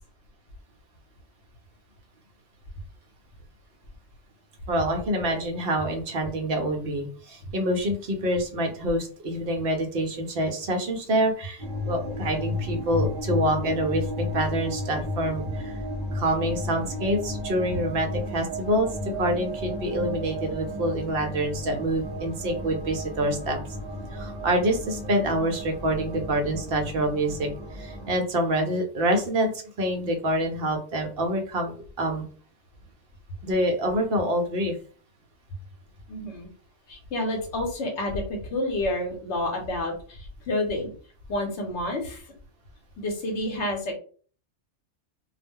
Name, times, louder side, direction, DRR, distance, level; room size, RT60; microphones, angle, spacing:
voice 1, 4.7-15.8 16.1-18.9 19.2-23.6 24.1-29.5 29.8-32.2 33.4-34.7, right 1 dB, 60° right, 4 dB, 0.8 m, -26 dB
sound 1, 11.6-28.2, left 1 dB, 25° right, 1.0 m, -33 dB
voice 2, 36.1-36.5 36.9-40.9 41.3-42.3 43.0-43.9, left 1 dB, 75° left, 2 dB, 1.0 m, -29 dB
2.3 x 2.1 x 3.5 m, 0.42 s
omnidirectional pair, 1.2 m